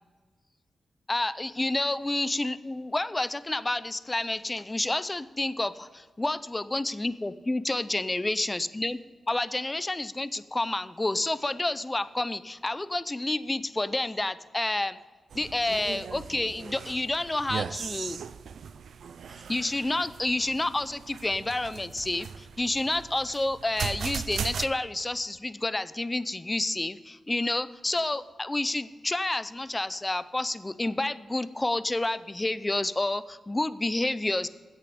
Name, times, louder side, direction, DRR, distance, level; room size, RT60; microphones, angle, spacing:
voice 1, 1.1-9.0 9.3-15.0 15.3-18.2 19.3-34.5, left 2 dB, 20° left, 15 dB, 0.5 m, -29 dB
sound 1, 15.3-24.7, right 7 dB, 80° right, 0.4 m, -38 dB
10.0 x 8.2 x 5.2 m, 1.5 s
cardioid pair, 60°, 0 cm